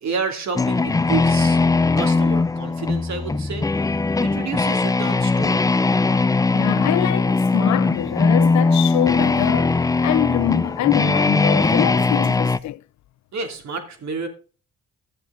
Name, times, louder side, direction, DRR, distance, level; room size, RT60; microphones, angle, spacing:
voice 1, 0.0-1.6 2.0-3.7 4.2-5.6 13.3-14.3, right 5 dB, 65° right, 2.7 m, -29 dB
sound 1, 0.6-12.6, left 3 dB, 10° left, 0.4 m, -20 dB
voice 2, 6.5-12.8, left 15 dB, 70° left, 0.5 m, -24 dB
12.0 x 7.7 x 3.8 m
cardioid pair, 90°, 30 cm